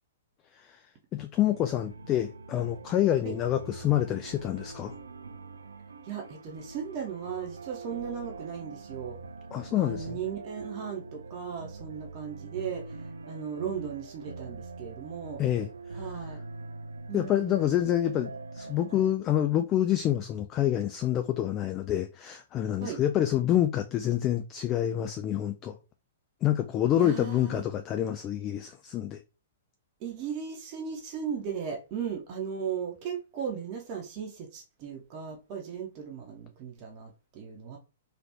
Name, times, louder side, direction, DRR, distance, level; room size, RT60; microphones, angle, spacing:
voice 1, 1.1-4.9 9.5-10.2 15.4-15.7 17.1-25.8 26.4-29.2, left 11 dB, 25° left, 0.3 m, -27 dB
sound 1, 1.5-19.2, right 3 dB, 75° right, 0.3 m, -43 dB
voice 2, 6.0-9.2 9.7-15.4 15.9-16.4 17.1-17.7 22.8-23.0 26.9-27.6 30.0-37.8, right 7 dB, 35° right, 0.7 m, -37 dB
3.3 x 2.4 x 2.9 m
figure-of-eight pair, 110°, 0 cm